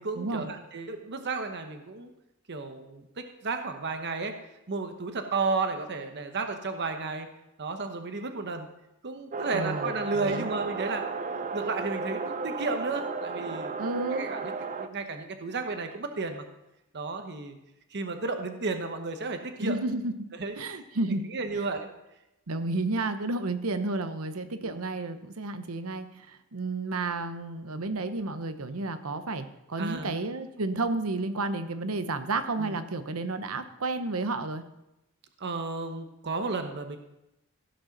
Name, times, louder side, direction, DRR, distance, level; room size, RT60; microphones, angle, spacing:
voice 1, 0.0-2.1 2.5-4.3 4.7-7.3 7.6-8.7 9.0-11.0 11.5-13.7 14.1-16.4 16.9-17.6 17.9-19.7 20.4-20.5 21.1-21.9 24.6-24.8 29.8-30.1 32.6-32.8 35.4-37.0, right 3 dB, 55° right, 6 dB, 1.0 m, -33 dB
sound 1, 9.3-14.9, right 4 dB, 35° right, 0.5 m, -34 dB
voice 2, 9.5-10.5 13.8-14.3 19.6-20.1 20.6-21.3 22.5-34.6, right 2 dB, 80° right, 10 dB, 0.9 m, -31 dB
15.5 x 5.4 x 5.9 m, 0.90 s
head